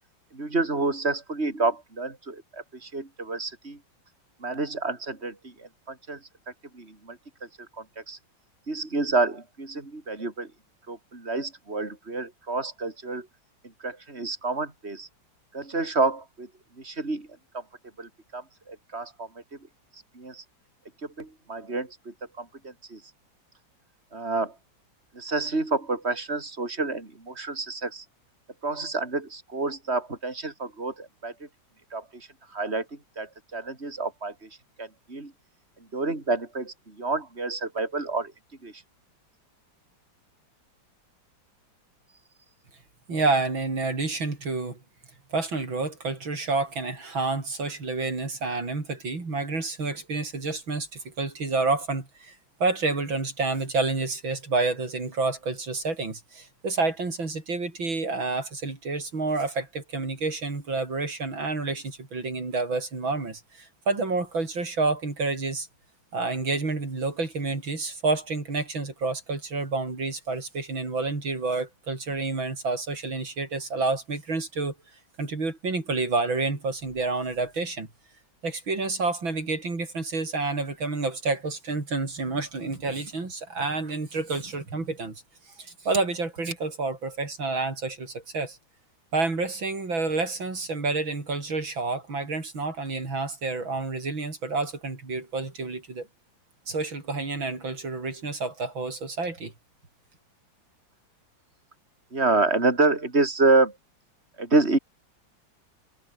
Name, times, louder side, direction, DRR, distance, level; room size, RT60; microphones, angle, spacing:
voice 1, 0.3-3.8 4.4-6.2 6.7-7.2 7.8-8.2 8.7-10.5 10.9-13.3 13.8-15.1 15.5-16.5 16.8-17.3 17.5-17.6 18.0-19.3 20.1-20.4 21.0-23.0 24.1-24.5 25.1-28.0 28.6-31.5 31.9-34.5 34.8-35.3 35.9-38.3 38.6-38.8 102.1-103.8 104.4-104.8, right 3 dB, 30° right, 4.9 m, -28 dB
voice 2, 43.1-44.8 45.3-52.4 52.6-65.7 66.1-74.7 75.2-77.9 78.4-85.2 85.6-88.6 89.1-96.1 96.7-99.5, right 3 dB, 80° right, 5.7 m, -29 dB
omnidirectional pair, 2.1 m